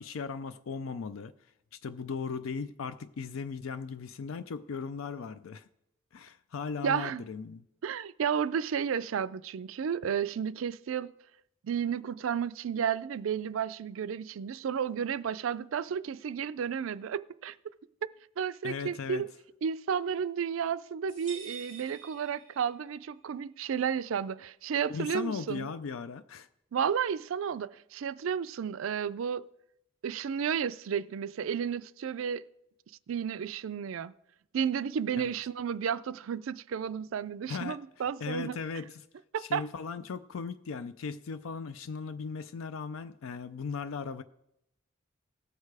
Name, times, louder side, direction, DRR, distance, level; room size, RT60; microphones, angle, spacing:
voice 1, 0.0-1.3 1.8-5.7 6.1-7.6 18.6-19.3 24.9-26.5 35.2-35.3 37.5-37.8 38.2-39.1 39.4-44.2, left 5 dB, 90° left, 0.4 m, -37 dB
voice 2, 6.8-7.2 7.8-11.1 11.6-17.6 18.0-18.1 18.4-19.3 19.6-25.7 26.7-29.5 30.0-32.4 33.1-34.1 34.5-38.6 39.3-39.6, right 7 dB, 80° right, 0.4 m, -32 dB
sound 1, 21.1-23.0, right 6 dB, 25° left, 5.2 m, -47 dB
17.0 x 6.6 x 4.8 m
head